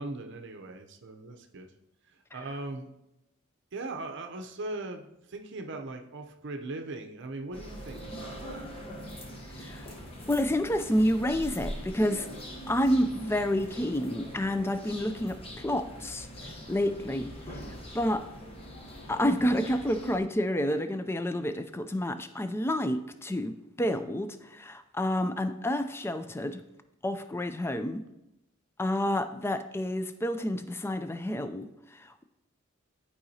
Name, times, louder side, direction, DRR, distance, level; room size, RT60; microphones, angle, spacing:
voice 1, 0.0-1.7 2.3-2.9 3.7-8.7, right 2 dB, 60° right, 5 dB, 0.6 m, -39 dB
sound 1, 7.5-20.2, equal, 30° left, 1.1 m, -42 dB
voice 2, 9.6-9.9 10.3-12.3 12.7-16.3 16.7-17.3 17.9-18.2 19.1-26.6 27.0-28.0 28.8-32.2, left 1 dB, 10° left, 10 dB, 0.4 m, -29 dB
11.5 x 4.8 x 2.8 m, 0.87 s
head